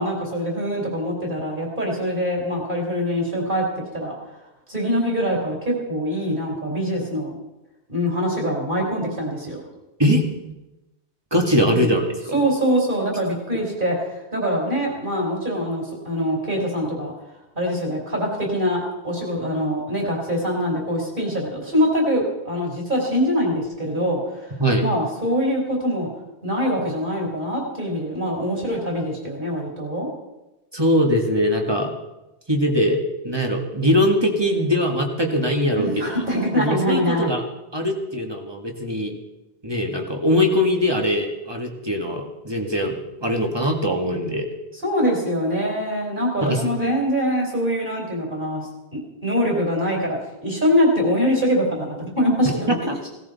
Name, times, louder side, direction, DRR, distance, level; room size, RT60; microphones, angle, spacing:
voice 1, 0.0-4.1 4.7-7.3 7.9-9.6 11.6-11.9 12.3-17.1 17.5-24.6 24.8-26.1 26.4-30.1 35.8-37.3 44.8-50.2 50.4-52.7 53.0-53.1, equal, 45° right, 0 dB, 4.4 m, -23 dB
voice 2, 11.3-12.4 24.6-24.9 30.7-31.9 32.5-36.0 36.5-37.4 37.7-39.1 39.6-44.5 46.4-46.6 52.7-53.0, equal, 20° right, 2 dB, 1.9 m, -21 dB
17.5 x 17.0 x 4.2 m, 0.98 s
omnidirectional pair, 1.1 m